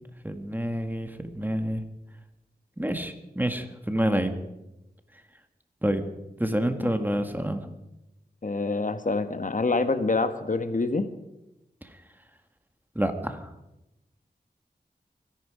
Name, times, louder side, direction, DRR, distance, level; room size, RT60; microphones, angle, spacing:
voice 1, 0.2-1.8 2.8-4.3 5.8-6.0 6.4-7.7 11.8-11.9 12.9-13.5, equal, 10° right, 7 dB, 1.7 m, -28 dB
voice 2, 8.4-11.1, left 3 dB, 50° left, 10 dB, 1.3 m, -26 dB
23.5 x 11.0 x 5.0 m, 0.93 s
wide cardioid pair, 60°, 17 cm